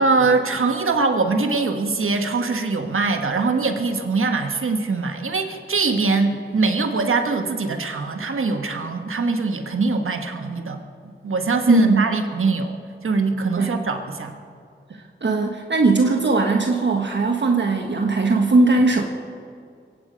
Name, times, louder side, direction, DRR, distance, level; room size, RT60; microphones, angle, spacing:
voice 1, 0.0-10.8 11.2-14.3, right 3 dB, 85° right, 5 dB, 1.4 m, -22 dB
voice 2, 11.7-12.0 13.6-13.7 15.2-19.0, right 3 dB, 60° right, 2 dB, 1.3 m, -18 dB
23.0 x 9.1 x 5.2 m, 2.3 s
cardioid pair, 40°, 21 cm